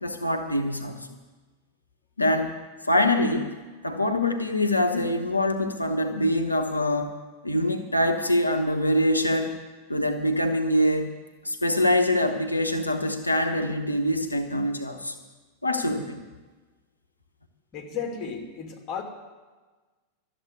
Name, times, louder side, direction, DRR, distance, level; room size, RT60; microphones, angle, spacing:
voice 1, 0.0-1.1 2.2-3.6 3.8-7.2 7.4-9.6 9.9-11.1 11.4-15.1 15.6-16.2, left 1 dB, 85° left, 6 dB, 0.9 m, -24 dB
voice 2, 17.7-19.0, left 6 dB, 35° left, 1 dB, 2.6 m, -34 dB
12.5 x 7.7 x 9.5 m, 1.3 s
figure-of-eight pair, 90°, 0 cm